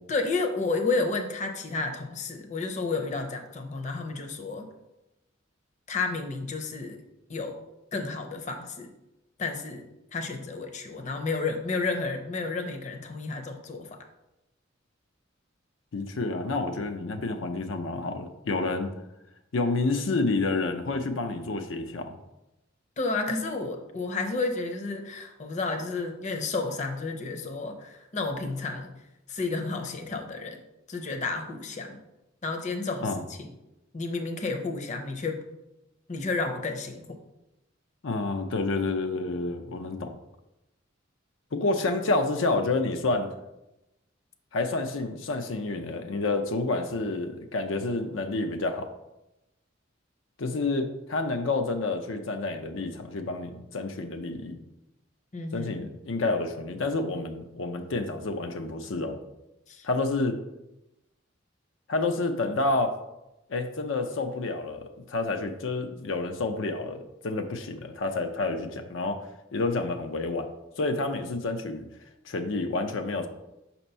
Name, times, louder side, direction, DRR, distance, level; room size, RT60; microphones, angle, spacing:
voice 1, 0.1-4.7 5.9-7.0 7.3-7.6 7.9-8.9 9.4-14.0 23.0-28.9 29.3-30.6 30.9-32.0 32.4-33.5 33.9-35.4 36.1-37.2 55.3-55.8 59.7-59.9, left 3 dB, 40° left, 4 dB, 0.7 m, -31 dB
voice 2, 15.9-18.9 19.5-22.1 33.0-33.2 38.0-40.1 41.5-43.3 44.5-48.9 50.4-54.6 55.5-59.2 59.8-60.4 61.9-62.9 63.5-69.2 69.5-70.5 70.8-71.8 72.3-73.3, left 3 dB, 90° left, 6 dB, 0.6 m, -29 dB
6.0 x 2.9 x 5.4 m, 0.93 s
head